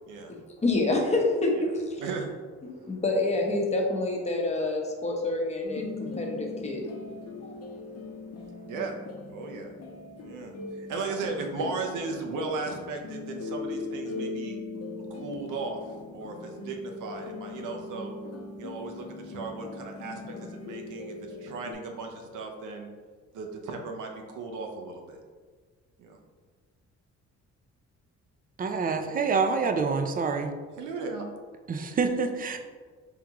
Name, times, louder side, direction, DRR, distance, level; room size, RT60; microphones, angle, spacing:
voice 1, 0.3-2.0 2.6-6.8 7.4-7.5, left 2 dB, 20° left, 0 dB, 0.8 m, -28 dB
voice 2, 2.0-2.3 8.7-8.9 9.3-9.7 10.2-14.6 15.1-15.8 16.1-18.1 18.6-22.9 23.3-25.2 26.0-26.2 30.8-31.3, right 3 dB, 85° right, 3 dB, 0.7 m, -36 dB
sound 1, 5.6-21.7, left 3 dB, 55° left, 0.7 m, -40 dB
voice 3, 28.6-30.5 31.7-32.6, right 5 dB, 30° right, 6 dB, 0.4 m, -27 dB
3.7 x 3.5 x 2.9 m, 1.5 s
cardioid pair, 90°, 30 cm